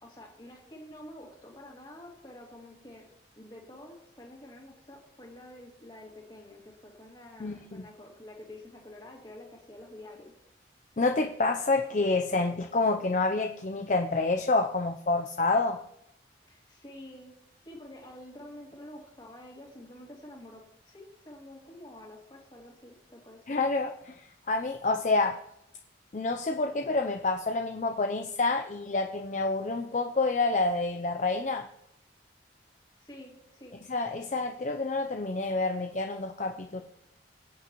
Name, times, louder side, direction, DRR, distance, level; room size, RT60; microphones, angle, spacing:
voice 1, 0.0-3.1 3.4-10.3 16.5-17.4 17.6-23.6 33.0-33.8, left 1 dB, 25° left, -1 dB, 2.3 m, -48 dB
voice 2, 7.4-7.9 11.0-15.8 23.5-25.4 26.1-31.7 33.9-36.8, left 3 dB, 40° left, 4 dB, 0.5 m, -28 dB
23.0 x 8.6 x 3.0 m, 0.81 s
head